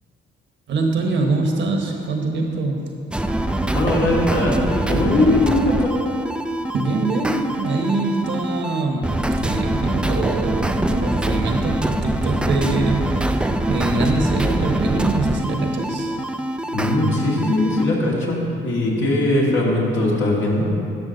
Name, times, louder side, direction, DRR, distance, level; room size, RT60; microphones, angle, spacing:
voice 1, 0.7-2.9 6.7-13.4 13.7-16.2, right 2 dB, 65° right, 2 dB, 1.2 m, -23 dB
sound 1, 3.1-17.8, right 1 dB, 5° right, 0.3 m, -24 dB
voice 2, 3.7-5.9 16.7-18.4 18.6-20.7, left 1 dB, 70° left, -3 dB, 2.0 m, -20 dB
12.0 x 5.8 x 4.0 m, 2.7 s
cardioid pair, 90°, 20 cm